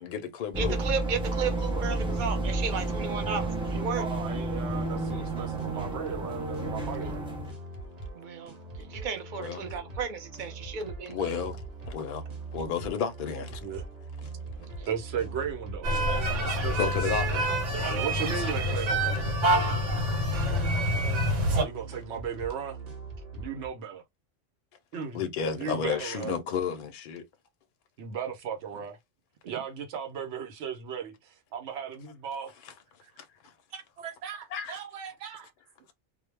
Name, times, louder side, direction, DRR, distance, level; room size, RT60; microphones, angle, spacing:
voice 1, 0.0-0.8 9.4-9.6 11.1-11.6 11.9-12.2 12.5-13.6 16.8-17.5 25.1-27.2 34.5-34.7, left 6 dB, 60° left, 0.6 m, -31 dB
sound 1, 0.5-7.5, right 2 dB, 10° right, 0.3 m, -31 dB
voice 2, 0.6-4.0 8.2-8.5 8.9-11.2, right 5 dB, 55° right, 0.6 m, -33 dB
voice 3, 4.0-7.3 13.6-13.8 14.9-15.9 16.4-16.8 17.7-19.4 21.5-22.8 23.3-24.0 24.9-25.2 25.6-26.3 28.0-29.0 29.4-32.5 33.7-35.5, right 7 dB, 75° right, 1.0 m, -36 dB
sound 2, 4.8-23.7, right 3 dB, 35° right, 0.9 m, -42 dB
sound 3, 15.8-21.6, equal, 90° right, 1.2 m, -26 dB
2.2 x 2.0 x 3.1 m
omnidirectional pair, 1.2 m